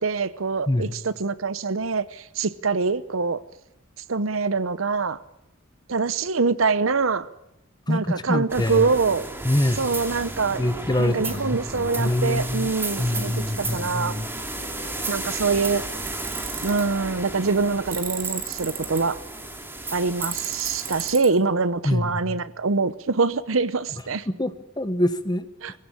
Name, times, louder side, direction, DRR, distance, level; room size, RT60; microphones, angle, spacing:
voice 1, 0.0-3.4 4.1-5.2 5.9-7.3 7.9-9.2 9.8-10.6 11.0-14.2 15.1-15.8 16.6-19.2 19.9-24.3 25.6-25.7, right 4 dB, 75° right, 16 dB, 0.8 m, -24 dB
voice 2, 7.9-8.9 9.4-9.8 10.6-12.7 13.0-14.3 21.8-22.4 24.3-25.5, left 1 dB, 20° left, 11 dB, 1.1 m, -25 dB
sound 1, 8.5-21.1, right 2 dB, 10° right, 3.0 m, -34 dB
Tools, 16.1-16.8 17.9-19.0 20.2-21.3, right 9 dB, 45° right, 3.2 m, -33 dB
22.0 x 16.5 x 8.5 m, 0.85 s
head